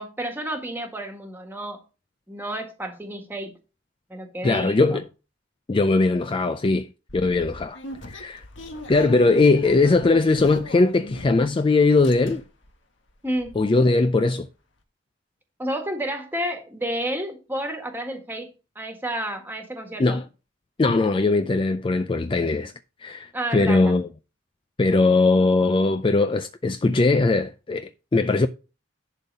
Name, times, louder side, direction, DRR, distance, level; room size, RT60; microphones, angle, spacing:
voice 1, 0.0-1.8 2.3-3.6 4.1-5.0 13.2-13.5 15.6-18.5 18.7-20.2 23.3-24.0, right 1 dB, 10° right, 1.6 m, -30 dB
voice 2, 4.4-5.0 5.7-7.8 8.1-8.4 8.9-12.4 13.6-14.5 20.0-20.2 20.8-22.7 23.0-24.1 24.8-28.5, left 3 dB, 25° left, 0.4 m, -20 dB
sound 1, 7.1-11.6 11.8-12.7 13.1-13.2 13.4-13.6, left 1 dB, 80° left, 1.6 m, -40 dB
11.0 x 3.9 x 5.4 m
head